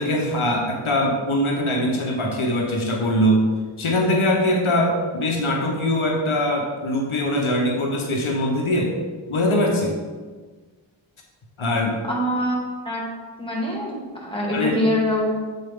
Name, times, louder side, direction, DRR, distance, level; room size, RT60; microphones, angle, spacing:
voice 1, 0.0-3.5 3.8-8.9 9.3-10.0 11.6-12.0 14.5-14.8, left 1 dB, 80° left, 1 dB, 1.0 m, -22 dB
voice 2, 12.1-12.6 12.9-13.1 13.4-15.4, left 1 dB, 10° left, -4 dB, 1.7 m, -24 dB
7.9 x 4.3 x 3.6 m, 1.4 s
wide cardioid pair, 60°, 48 cm